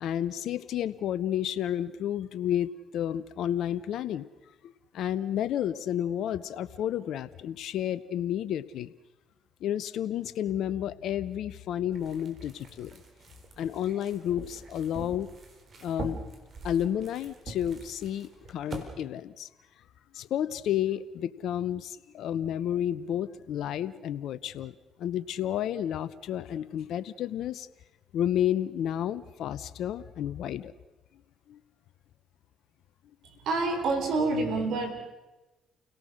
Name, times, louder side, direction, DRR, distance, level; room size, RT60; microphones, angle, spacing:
voice 1, 0.0-4.3 4.6-8.9 9.6-13.0 13.6-15.3 15.8-16.2 16.6-19.5 20.1-27.7 28.1-30.7 31.5-31.6, left 10 dB, 70° left, 15 dB, 0.7 m, -31 dB
sound 1, 11.9-18.8, right 4 dB, 50° right, 4.0 m, -44 dB
voice 2, 33.4-34.9, right 3 dB, 70° right, 5 dB, 4.6 m, -27 dB
29.5 x 18.0 x 6.5 m, 1.1 s
supercardioid pair, 60°, 0 cm